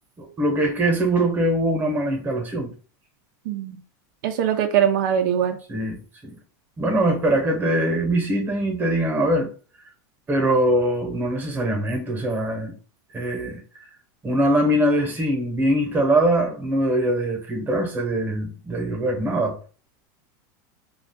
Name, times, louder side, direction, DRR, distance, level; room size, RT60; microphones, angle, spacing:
voice 1, 0.2-2.7 5.7-6.0 6.8-9.5 10.3-12.7 13.1-13.6 14.2-19.6, right 1 dB, 20° right, 0.9 m, -22 dB
voice 2, 3.5-3.8 4.2-5.6, right 9 dB, 80° right, 0.5 m, -21 dB
2.5 x 2.3 x 3.5 m
supercardioid pair, 145°, 11 cm